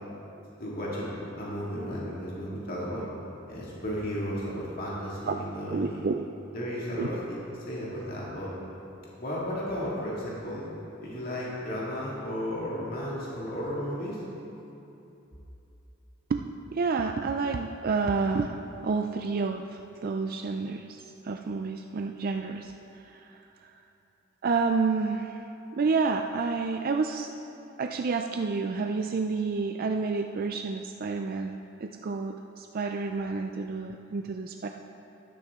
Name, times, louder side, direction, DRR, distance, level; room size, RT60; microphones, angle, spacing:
voice 1, 0.6-3.1 3.5-6.0 6.5-8.5 9.2-10.6 11.0-14.2, equal, 50° left, -6 dB, 2.2 m, -34 dB
voice 2, 5.7-6.2 7.0-7.1 16.3-16.4 16.7-23.7 24.4-25.4 25.7-27.3 27.8-34.7, right 4 dB, 50° right, 4 dB, 0.4 m, -29 dB
13.0 x 12.0 x 3.6 m, 2.9 s
head